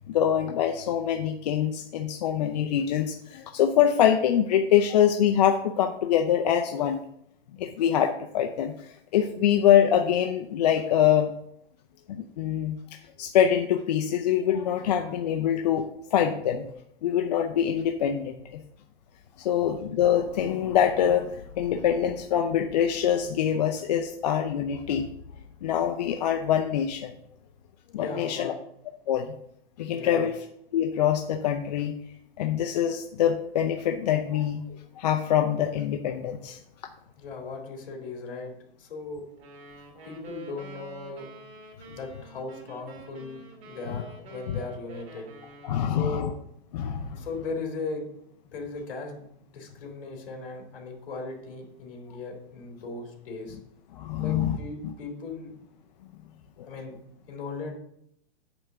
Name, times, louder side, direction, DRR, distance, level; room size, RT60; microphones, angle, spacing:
voice 1, 0.1-7.0 7.6-11.3 12.1-12.8 13.2-16.6 17.0-18.6 19.4-25.0 25.6-27.1 27.9-28.5 29.1-29.3 29.8-30.4 30.7-31.9 32.4-34.6 35.0-36.6 44.5-44.6 45.6-46.3 46.7-47.2 53.9-54.6, left 9 dB, 40° left, 3 dB, 0.5 m, -24 dB
voice 2, 27.9-28.5 29.9-30.3 37.1-38.5 38.8-39.2 40.0-41.3 41.9-45.3 45.9-46.3 47.2-48.1 48.5-49.2 49.5-53.6 54.2-55.6 56.7-57.0 57.3-57.7, left 3 dB, 60° left, 2 dB, 2.9 m, -37 dB
sound 1, 39.4-46.2, right 3 dB, 75° right, 2.4 m, -48 dB
8.9 x 3.5 x 6.6 m, 0.74 s
hypercardioid pair, 165°, 31 cm